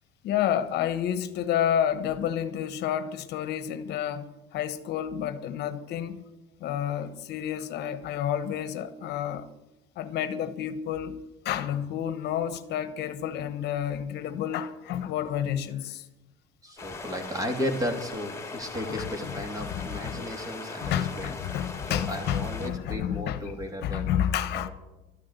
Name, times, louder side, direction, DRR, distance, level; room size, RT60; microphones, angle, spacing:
voice 1, 0.2-6.2 6.6-9.5 10.0-11.2 11.4-16.1 18.9-19.1 19.7-20.2 20.8-23.4 23.8-24.7, left 10 dB, 65° left, 1.1 m, -30 dB
voice 2, 16.6-21.4 21.9-24.2 24.5-24.7, equal, 20° right, 2.8 m, -34 dB
sound 1, 16.8-22.7, left 3 dB, 15° left, 2.6 m, -40 dB
12.5 x 10.5 x 8.1 m
cardioid pair, 110°, 19 cm